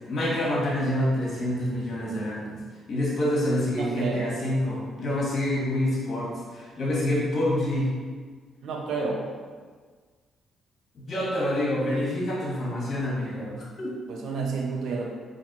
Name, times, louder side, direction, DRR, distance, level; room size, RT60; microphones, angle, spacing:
voice 1, 0.1-2.6 2.9-7.9 10.9-13.9, left 1 dB, 50° left, -5 dB, 1.3 m, -27 dB
voice 2, 3.7-4.4 8.6-9.4 14.1-15.1, right 4 dB, 75° right, -1 dB, 0.7 m, -30 dB
4.2 x 2.8 x 3.0 m, 1.5 s
cardioid pair, 90°, 0 cm